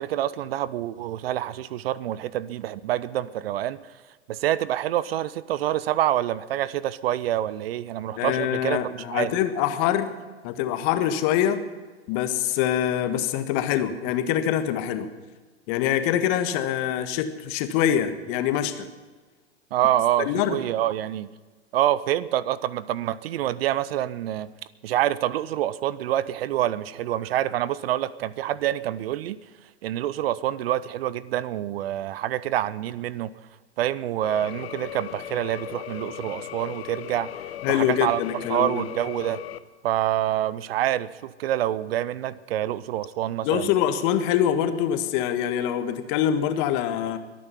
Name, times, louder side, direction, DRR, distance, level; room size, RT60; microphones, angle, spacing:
voice 1, 0.0-3.8 4.3-8.8 9.1-9.3 19.7-21.3 21.7-24.5 24.8-29.4 29.8-33.3 33.8-37.3 37.7-38.2 38.5-39.4 39.8-43.7, right 12 dB, 60° right, 19 dB, 0.7 m, -26 dB
voice 2, 8.2-10.1 10.4-11.6 12.1-15.1 15.7-18.9 20.2-20.6 37.6-38.8 43.4-47.2, left 10 dB, 45° left, 9 dB, 1.5 m, -24 dB
sound 1, 34.2-39.6, left 13 dB, 60° left, 0.9 m, -37 dB
23.0 x 9.3 x 5.7 m, 1.3 s
hypercardioid pair, 100°, 34 cm